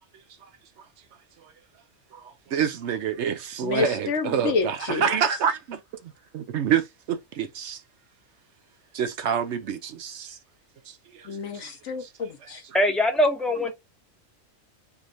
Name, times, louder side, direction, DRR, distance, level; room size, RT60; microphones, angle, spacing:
voice 1, 2.5-5.8 6.3-7.8 8.9-10.4 11.2-11.3, right 8 dB, 65° right, 0.8 m, -27 dB
voice 2, 3.6-5.1 11.2-12.6, left 5 dB, 65° left, 1.2 m, -29 dB
voice 3, 12.7-13.7, left 1 dB, ahead, 0.8 m, -22 dB
4.5 x 3.2 x 2.6 m
omnidirectional pair, 1.3 m